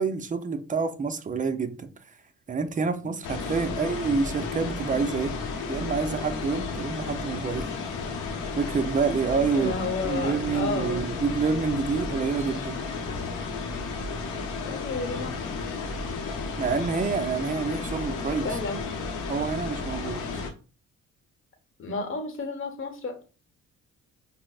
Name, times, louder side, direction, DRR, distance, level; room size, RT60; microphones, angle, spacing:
voice 1, 0.0-1.9 2.5-5.3 5.7-7.6 8.6-9.7 10.0-12.8 16.6-18.5 19.3-20.4, right 5 dB, 25° right, 0.5 m, -27 dB
sound 1, 3.2-20.5, left 4 dB, 85° left, 0.8 m, -33 dB
voice 2, 9.5-11.0 14.7-15.5 18.4-18.8 21.8-23.2, left 3 dB, 45° left, 1.0 m, -32 dB
5.4 x 2.0 x 2.3 m
cardioid pair, 90°, 30 cm